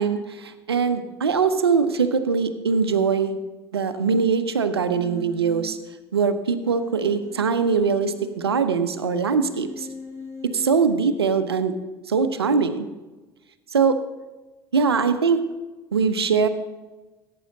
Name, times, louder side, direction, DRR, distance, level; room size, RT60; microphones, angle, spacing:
voice 1, 0.0-3.4 3.7-5.8 6.1-9.9 10.4-11.7 12.1-12.9 13.7-14.0 14.7-15.4 15.9-16.5, right 5 dB, 80° right, 11 dB, 0.8 m, -22 dB
Human voice, 4.9-5.7 6.7-8.5 9.3-10.9, left 2 dB, 20° right, 3.6 m, -40 dB
16.5 x 8.6 x 3.9 m, 1.2 s
figure-of-eight pair, 65°, 13 cm